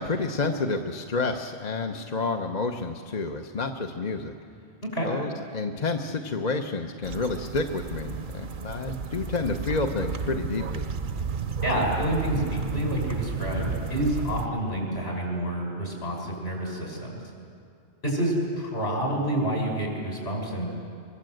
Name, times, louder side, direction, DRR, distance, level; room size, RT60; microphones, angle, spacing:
voice 1, 0.0-4.3 5.0-10.9, left 3 dB, 40° left, 4 dB, 1.0 m, -29 dB
sound 1, 7.0-14.5, right 5 dB, 50° right, 0.9 m, -32 dB
voice 2, 11.6-17.2 18.0-20.7, right 1 dB, 55° left, 0 dB, 6.0 m, -28 dB
23.5 x 23.5 x 7.9 m, 2.4 s
omnidirectional pair, 1.2 m